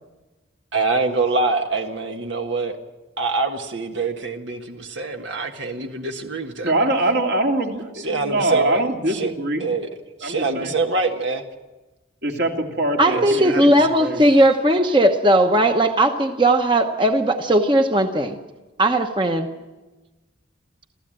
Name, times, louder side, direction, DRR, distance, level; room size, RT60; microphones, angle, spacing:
voice 1, 0.7-2.8 3.2-6.9 8.0-9.3 9.6-9.9 10.2-11.4 13.0-13.7, right 3 dB, 80° right, 1.6 m, -25 dB
voice 2, 6.6-9.7 10.2-10.7 12.2-14.2, right 1 dB, 65° right, 2.7 m, -23 dB
voice 3, 13.0-18.4 18.8-19.5, right 1 dB, 25° right, 1.0 m, -17 dB
28.0 x 15.0 x 9.0 m
head